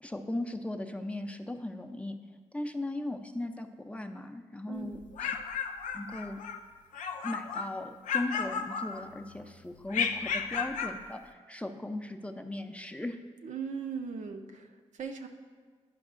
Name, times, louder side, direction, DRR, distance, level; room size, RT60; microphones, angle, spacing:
voice 1, 0.0-2.2 2.5-5.4 5.9-6.4 7.2-13.2, left 1 dB, 10° left, 5 dB, 0.5 m, -38 dB
voice 2, 4.7-5.0 13.4-15.3, right 6 dB, 70° right, 4 dB, 0.6 m, -39 dB
sound 1, 4.9-6.6 6.9-7.7 8.0-9.3 9.9-11.0, left 6 dB, 85° left, 0.4 m, -33 dB
10.5 x 5.3 x 2.5 m, 1.5 s
cardioid pair, 50°, 13 cm